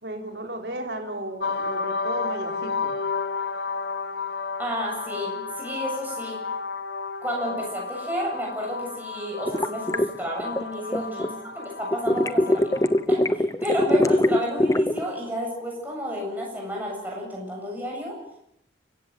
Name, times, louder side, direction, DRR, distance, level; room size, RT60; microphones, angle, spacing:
voice 1, 0.0-2.9 10.8-11.4, right 1 dB, 60° right, 3 dB, 4.1 m, -35 dB
sound 1, 1.4-13.0, left 4 dB, 60° left, 1.0 m, -32 dB
voice 2, 4.6-6.4 7.2-11.3 11.5-12.7 13.1-18.2, equal, 10° right, -2 dB, 7.7 m, -31 dB
sound 2, 9.5-11.3 11.9-15.0, left 1 dB, 15° left, 0.9 m, -21 dB
29.5 x 16.0 x 7.7 m, 0.75 s
head